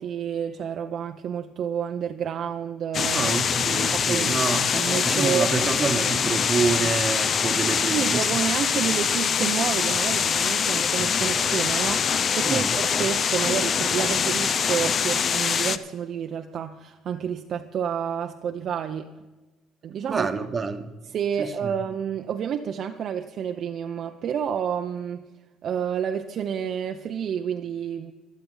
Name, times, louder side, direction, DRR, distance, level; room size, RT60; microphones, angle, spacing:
voice 1, 0.0-3.3 3.9-4.3 4.7-5.5 7.9-19.1 19.8-20.3 21.1-25.2 25.6-28.1, right 8 dB, 45° right, 4 dB, 0.6 m, -29 dB
sound 1, 2.9-15.8, left 6 dB, 35° left, 0.6 m, -24 dB
voice 2, 3.1-4.6 5.0-8.3 12.5-12.7 20.1-20.9 21.4-21.7, right 5 dB, 25° right, 8 dB, 1.1 m, -27 dB
25.0 x 8.5 x 3.9 m, 1.2 s
cardioid pair, 155°, 0 cm